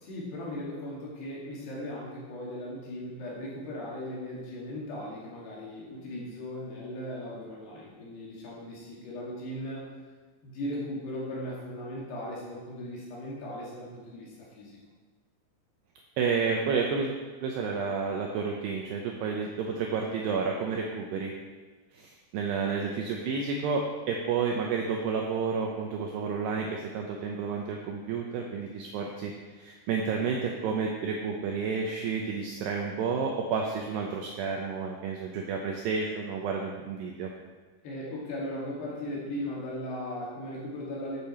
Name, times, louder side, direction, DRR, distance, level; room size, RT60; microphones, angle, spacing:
voice 1, 0.0-9.8 10.4-14.8 22.6-22.7 37.8-41.2, left 1 dB, 60° left, -5 dB, 3.9 m, -38 dB
voice 2, 16.2-17.1 17.4-21.3 21.9-29.3 29.6-37.3, right 5 dB, 90° right, 1 dB, 2.3 m, -30 dB
12.5 x 7.4 x 4.4 m, 1.4 s
omnidirectional pair, 5.8 m